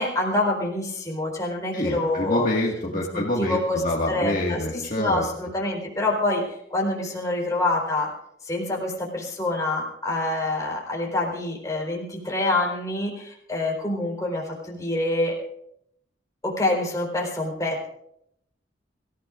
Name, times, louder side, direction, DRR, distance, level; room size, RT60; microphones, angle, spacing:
voice 1, 0.0-2.5 3.1-6.4 6.7-8.1 8.4-15.4 16.4-17.9, left 2 dB, 20° left, -2 dB, 4.1 m, -26 dB
voice 2, 1.7-5.3, left 1 dB, 45° left, -2 dB, 1.9 m, -26 dB
25.0 x 15.5 x 2.5 m, 0.76 s
head